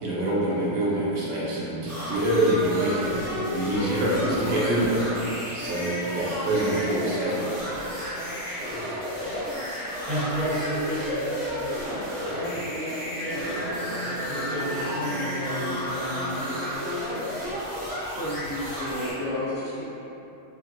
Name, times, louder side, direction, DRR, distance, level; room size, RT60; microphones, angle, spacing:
voice 1, 0.0-3.2 3.5-7.5, right 1 dB, 75° right, -6 dB, 0.9 m, -25 dB
sound 1, 1.9-19.1, equal, 10° right, 0.7 m, -33 dB
voice 2, 10.1-11.8 12.2-13.5 14.0-16.6, equal, 50° right, -16 dB, 1.7 m, -31 dB
Singing, 13.0-18.1, equal, 85° left, 0.4 m, -36 dB
voice 3, 18.1-19.8, left 1 dB, 10° left, -18 dB, 1.1 m, -31 dB
2.8 x 2.4 x 2.7 m, 2.9 s
omnidirectional pair, 1.4 m